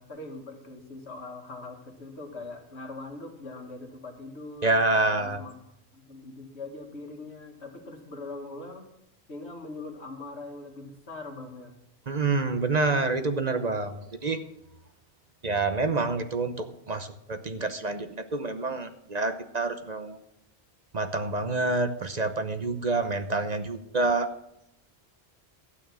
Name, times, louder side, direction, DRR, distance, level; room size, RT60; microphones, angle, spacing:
voice 1, 0.0-5.5 5.9-8.9 9.3-11.7, left 2 dB, 80° left, 3 dB, 2.2 m, -42 dB
voice 2, 4.6-5.4 12.1-14.4 15.4-20.2 20.9-24.3, right 3 dB, 40° right, 8 dB, 0.9 m, -27 dB
13.0 x 9.0 x 6.2 m, 0.81 s
omnidirectional pair, 1.1 m